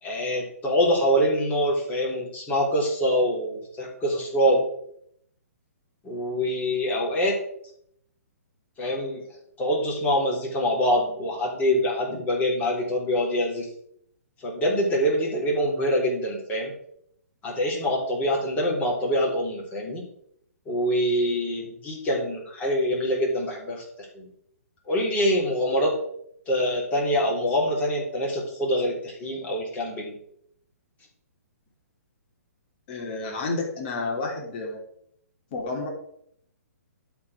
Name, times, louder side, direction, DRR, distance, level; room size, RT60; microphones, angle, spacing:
voice 1, 0.0-4.7 6.0-7.4 8.8-9.2 9.6-13.7 14.4-16.7 17.4-20.0 20.6-24.3 24.8-26.0 26.5-30.1, equal, 20° left, -2 dB, 3.3 m, -25 dB
voice 2, 32.9-34.8 35.5-35.9, left 3 dB, 40° left, 0 dB, 3.1 m, -30 dB
12.0 x 4.6 x 5.0 m, 0.70 s
figure-of-eight pair, 130°, 8 cm